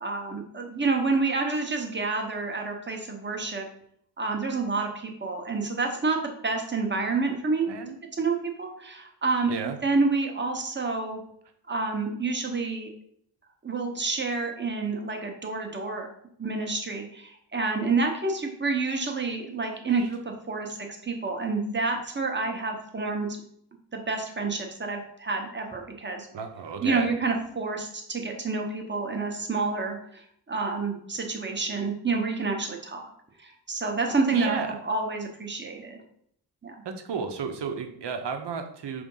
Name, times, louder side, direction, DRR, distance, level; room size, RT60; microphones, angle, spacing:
voice 1, 0.0-3.7 4.2-6.2 6.4-7.7 8.2-9.5 9.8-11.2 11.7-12.9 13.6-16.1 16.4-20.2 20.5-23.3 23.9-26.3 26.8-30.2 30.5-33.1 33.4-36.0 36.6-36.7, right 3 dB, 25° right, 2 dB, 0.9 m, -28 dB
voice 2, 7.7-8.0 9.5-9.8 19.5-20.1 20.6-20.7 26.3-27.1 34.3-34.8 36.8-39.0, right 5 dB, 70° right, 5 dB, 0.9 m, -33 dB
5.0 x 3.5 x 5.4 m, 0.69 s
wide cardioid pair, 150°, 43 cm